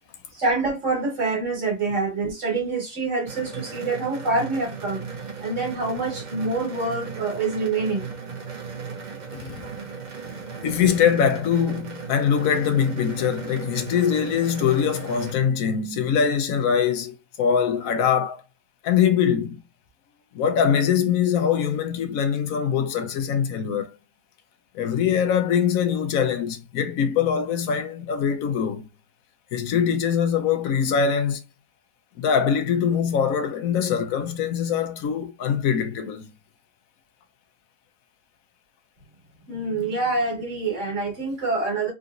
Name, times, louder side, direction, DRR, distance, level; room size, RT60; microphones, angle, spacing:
voice 1, 0.3-5.1 5.4-8.1 39.5-41.9, right 3 dB, 60° right, 1.8 m, -26 dB
Gas Wall Heater, 3.3-15.3, right 5 dB, 40° right, 0.7 m, -37 dB
voice 2, 9.3-9.8 10.6-18.4 18.8-19.6 20.3-23.9 24.7-28.9 29.5-31.4 32.2-36.3, left 7 dB, 80° left, 1.0 m, -23 dB
3.7 x 2.6 x 2.4 m
omnidirectional pair, 1.5 m